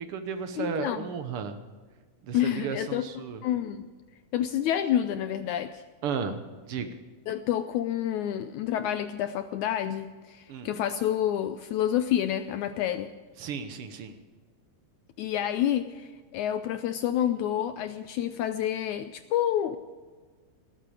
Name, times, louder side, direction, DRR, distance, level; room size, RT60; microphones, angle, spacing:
voice 1, 0.0-1.6 2.2-3.4 6.0-7.0 10.5-10.7 13.4-14.1, right 6 dB, 85° right, 8 dB, 1.2 m, -34 dB
voice 2, 0.6-1.1 2.3-3.1 3.4-3.9 4.3-5.8 7.3-13.1 15.2-19.8, left 11 dB, 80° left, 10 dB, 1.7 m, -28 dB
19.5 x 13.5 x 4.8 m, 1.4 s
omnidirectional pair, 4.0 m